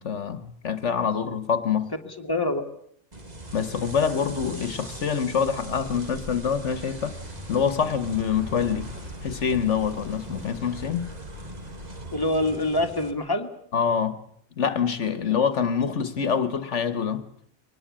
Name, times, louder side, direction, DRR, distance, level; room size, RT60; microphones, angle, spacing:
voice 1, 0.0-1.9 3.5-7.2 7.5-8.9 9.2-11.1 13.7-14.2 14.6-17.2, left 7 dB, 75° left, 1.5 m, -25 dB
voice 2, 2.1-2.7 12.1-13.5, left 1 dB, 20° left, 2.1 m, -25 dB
sound 1, 3.1-13.1, right 1 dB, 35° right, 2.2 m, -40 dB
Vehicle, 6.6-13.0, right 1 dB, 85° right, 6.9 m, -43 dB
23.0 x 19.0 x 8.7 m
omnidirectional pair, 1.3 m